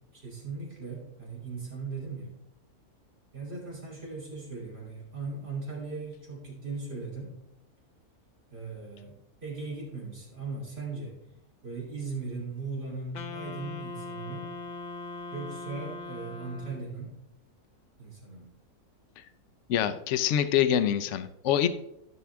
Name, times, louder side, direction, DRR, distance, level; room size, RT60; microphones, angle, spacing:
voice 1, 0.1-2.3 3.3-7.4 8.5-9.1 9.4-11.1 11.6-14.5 15.3-17.2 18.0-18.5, right 4 dB, 40° right, -3 dB, 3.4 m, -38 dB
Wind instrument woodwind instrument, 13.1-17.0, left 3 dB, 80° left, 0.4 m, -40 dB
voice 2, 19.7-21.7, left 10 dB, 65° left, 10 dB, 0.8 m, -25 dB
13.5 x 6.1 x 3.4 m, 0.85 s
omnidirectional pair, 1.6 m